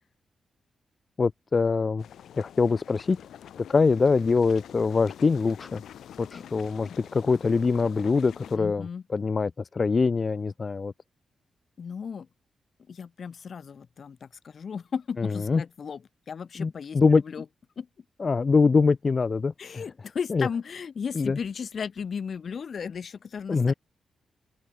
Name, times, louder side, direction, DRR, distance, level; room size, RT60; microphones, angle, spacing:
voice 1, 1.2-2.0 2.4-3.2 3.7-5.8 6.2-10.9 15.2-15.6 16.6-17.2 18.2-19.8 20.3-20.5 21.1-21.4 23.5-23.7, left 4 dB, 35° left, 1.0 m, -24 dB
sound 1, 2.0-8.6, left 10 dB, 85° left, 1.8 m, -46 dB
voice 2, 8.5-9.0 11.8-12.3 12.9-16.0 16.3-17.4 17.8-17.9 19.6-23.7, left 6 dB, 50° left, 2.9 m, -35 dB
open air
cardioid pair, 120°, 0 cm